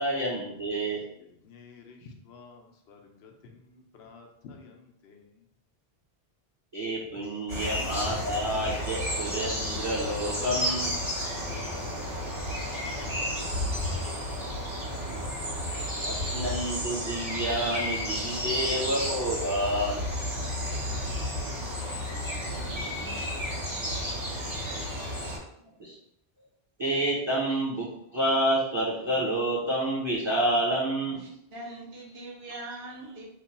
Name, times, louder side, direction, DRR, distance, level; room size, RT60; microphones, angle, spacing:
voice 1, 0.0-1.0 6.7-11.0 16.0-20.0 25.8-25.9 26.8-31.2, right 1 dB, 30° right, -6 dB, 0.7 m, -29 dB
voice 2, 1.2-5.3 7.1-7.2 11.0-14.8 20.4-24.2, left 5 dB, 90° left, 2 dB, 0.9 m, -53 dB
sound 1, 7.5-25.4, equal, 55° right, 1.6 m, -32 dB
voice 3, 31.0-33.2, right 2 dB, 80° right, -5 dB, 1.2 m, -42 dB
3.1 x 2.2 x 4.1 m, 0.77 s
omnidirectional pair, 1.0 m